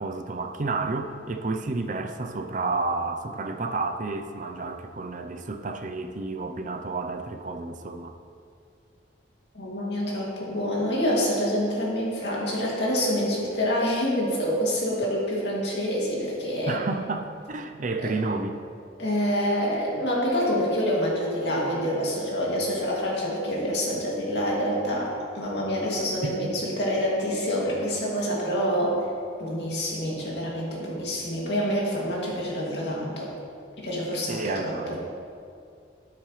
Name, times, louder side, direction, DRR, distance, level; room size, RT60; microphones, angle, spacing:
voice 1, 0.0-8.2 16.7-18.6 26.2-26.5 34.3-35.0, right 3 dB, 40° right, 5 dB, 0.5 m, -31 dB
voice 2, 9.5-16.8 19.0-29.0 29.4-33.3 33.8-35.0, equal, 60° left, -4 dB, 2.4 m, -27 dB
12.0 x 9.8 x 3.2 m, 2.4 s
head